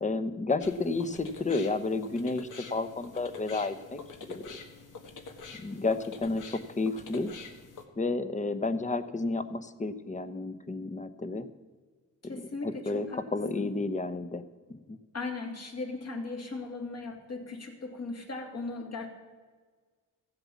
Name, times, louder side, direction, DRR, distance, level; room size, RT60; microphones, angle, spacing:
voice 1, 0.0-4.0 4.3-4.6 5.6-7.3 8.0-11.5 12.3-14.4 14.7-15.0, left 3 dB, 20° left, 12 dB, 0.9 m, -31 dB
sound 1, 0.6-7.8, left 5 dB, 65° left, 1.6 m, -46 dB
voice 2, 12.2-13.2 13.5-13.6 15.1-19.1, left 3 dB, 50° left, 2 dB, 2.7 m, -38 dB
14.5 x 7.9 x 7.2 m, 1.5 s
cardioid pair, 80°, 33 cm